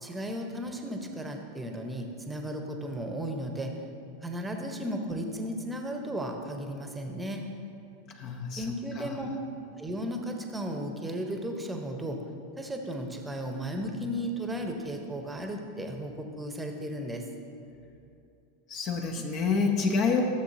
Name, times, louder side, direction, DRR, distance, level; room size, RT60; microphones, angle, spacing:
voice 1, 0.0-3.8 4.2-7.4 8.5-9.3 9.8-12.2 12.6-17.3, equal, 10° right, 3 dB, 0.9 m, -35 dB
voice 2, 8.1-8.6 9.0-9.1 18.7-20.2, left 5 dB, 40° left, 3 dB, 0.8 m, -27 dB
14.0 x 7.0 x 2.8 m, 2.6 s
figure-of-eight pair, 85°, 0 cm